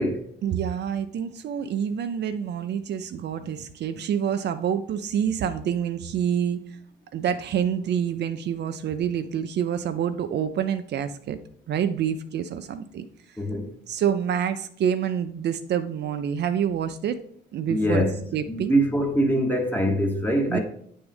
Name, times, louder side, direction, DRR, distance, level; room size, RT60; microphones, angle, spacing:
voice 1, 0.4-6.6 7.1-11.4 11.7-13.1 13.9-17.2 17.5-18.1 18.3-18.8 20.5-20.6, right 8 dB, 60° right, 0.5 m, -27 dB
voice 2, 13.4-13.7 17.7-20.6, equal, 10° left, 1.1 m, -24 dB
8.7 x 3.5 x 3.4 m
cardioid pair, 90°, 20 cm